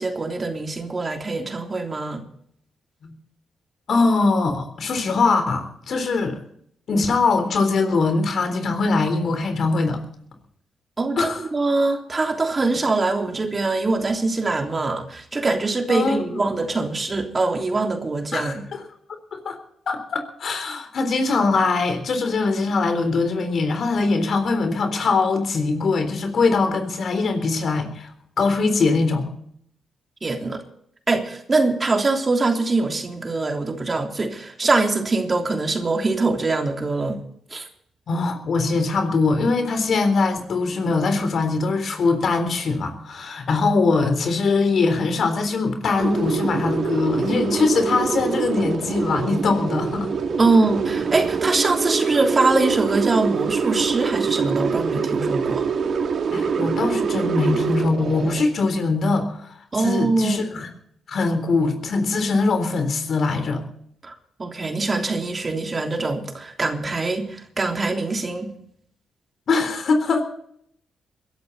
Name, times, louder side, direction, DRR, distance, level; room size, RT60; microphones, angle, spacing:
voice 1, 0.0-2.2 11.0-18.7 30.2-30.6 31.1-37.2 37.5-37.7 50.4-55.7 59.7-60.4 64.0-64.1 64.4-68.5, right 3 dB, 35° right, 3.2 m, -23 dB
voice 2, 3.9-6.4 6.9-10.0 11.2-11.4 15.9-16.4 18.3-18.8 19.3-19.6 19.9-28.1 28.4-29.3 38.1-50.1 56.3-59.5 59.8-60.7 61.1-63.6 69.5-70.2, left 3 dB, 60° left, 3.7 m, -22 dB
sound 1, 46.0-58.4, right 6 dB, 60° right, 2.5 m, -25 dB
22.0 x 12.0 x 4.0 m
supercardioid pair, 50°, 0 cm